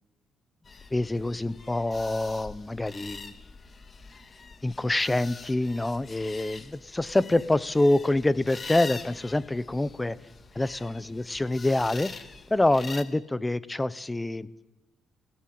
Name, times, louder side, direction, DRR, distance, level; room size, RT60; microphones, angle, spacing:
sound 1, 0.6-13.0, left 4 dB, 35° left, 2.1 m, -44 dB
voice 1, 0.9-3.4 4.6-10.2 10.6-12.1 12.5-14.5, left 2 dB, 15° left, 17 dB, 1.0 m, -26 dB
29.5 x 17.5 x 7.8 m, 1.0 s
cardioid pair, 90°, 0 cm